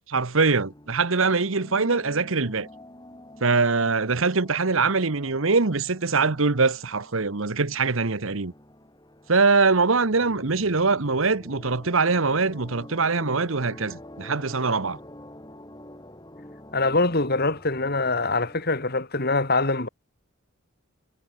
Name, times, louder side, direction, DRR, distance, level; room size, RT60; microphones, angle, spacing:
voice 1, 0.1-2.7 3.4-8.5 9.3-15.0, right 4 dB, 70° right, 1.2 m, -23 dB
sound 1, 0.6-19.0, left 1 dB, 20° left, 6.0 m, -47 dB
voice 2, 16.7-19.9, left 3 dB, 45° left, 2.9 m, -24 dB
head